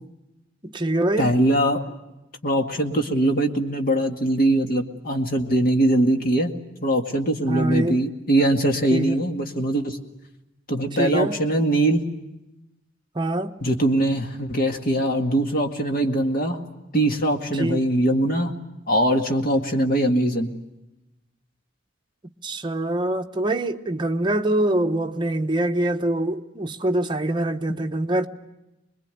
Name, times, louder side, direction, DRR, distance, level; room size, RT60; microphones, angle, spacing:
voice 1, 0.6-1.3 7.5-8.0 8.9-9.1 11.0-11.4 13.1-13.5 17.6-17.8 22.4-28.3, right 1 dB, 25° right, 1.0 m, -24 dB
voice 2, 1.2-1.8 2.4-6.5 6.8-10.0 10.7-12.0 13.6-16.6 16.9-18.5 18.9-20.5 27.7-27.8, right 1 dB, 50° left, 2.0 m, -22 dB
25.0 x 21.5 x 9.1 m
head